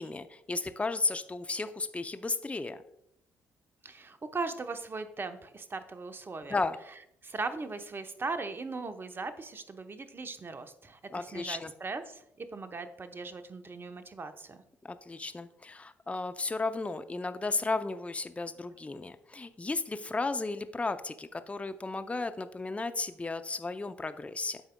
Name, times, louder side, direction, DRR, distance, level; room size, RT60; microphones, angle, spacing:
voice 1, 0.0-2.8 6.5-6.8 11.1-11.7 14.8-24.6, left 3 dB, 20° left, 10 dB, 0.5 m, -34 dB
voice 2, 3.8-6.6 7.2-14.6, right 3 dB, 35° right, 9 dB, 0.9 m, -39 dB
13.5 x 4.9 x 2.2 m, 0.75 s
hypercardioid pair, 45°, 7 cm